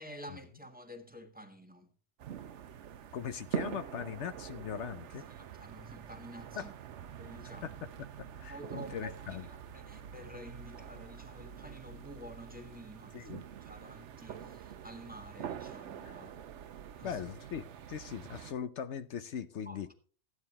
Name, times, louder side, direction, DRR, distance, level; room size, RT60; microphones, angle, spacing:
voice 1, 0.0-1.9 5.3-6.7 7.2-7.8 8.3-16.4 17.0-17.2 19.6-19.9, equal, 5° right, 1.5 m, -50 dB
sound 1, 2.2-18.5, right 9 dB, 75° right, 1.0 m, -45 dB
voice 2, 3.1-5.2 6.6-6.7 7.6-7.7 8.4-9.5 13.1-13.4 16.0-16.1 17.0-19.9, left 8 dB, 70° left, 1.0 m, -40 dB
14.5 x 9.7 x 4.2 m
omnidirectional pair, 1.3 m